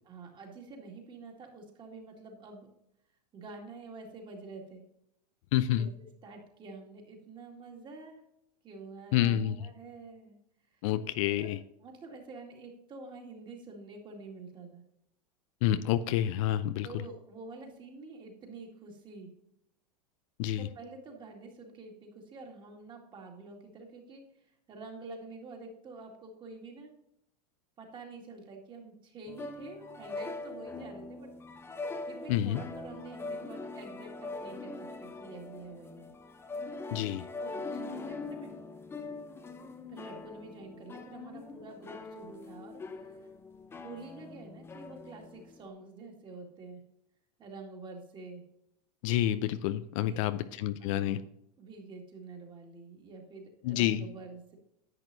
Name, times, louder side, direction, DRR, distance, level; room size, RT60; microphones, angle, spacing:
voice 1, 0.0-2.7 3.3-4.8 5.6-5.9 6.2-8.2 8.6-10.4 10.7-10.8 11.4-11.5 11.8-14.8 16.8-19.3 20.6-26.9 27.8-31.3 32.0-36.1 37.4-38.5 39.9-43.3 43.8-46.8 47.4-48.4 50.0-50.4 50.8-51.2 51.6-54.6, right 3 dB, 25° right, 2 dB, 2.1 m, -48 dB
voice 2, 5.5-5.9 9.1-9.6 10.8-11.6 15.6-16.9 20.4-20.7 32.3-32.6 36.9-37.2 49.0-51.2 53.6-54.0, left 12 dB, 55° left, 12 dB, 0.5 m, -28 dB
sound 1, 29.3-45.7, left 3 dB, 10° left, 0.6 m, -42 dB
10.5 x 8.1 x 2.7 m, 0.80 s
supercardioid pair, 145°, 20 cm